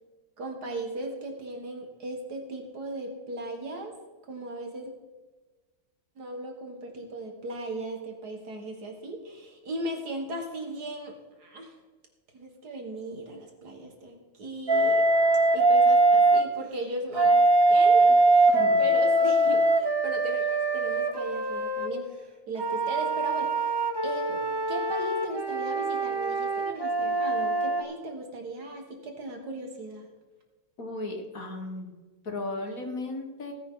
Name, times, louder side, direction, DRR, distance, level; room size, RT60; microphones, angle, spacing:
voice 1, 0.4-3.9 4.3-4.9 6.2-11.8 12.3-15.1 15.5-22.1 22.5-23.8 24.0-30.1, right 1 dB, 60° right, 3 dB, 2.4 m, -37 dB
Wind instrument woodwind instrument, 14.7-16.5 17.1-21.9 22.6-27.8, right 2 dB, 20° right, 0.8 m, -22 dB
voice 2, 18.5-18.8 30.8-32.0 32.2-33.5, left 2 dB, 50° left, 4 dB, 2.0 m, -35 dB
17.5 x 10.0 x 3.9 m, 1.3 s
omnidirectional pair, 1.9 m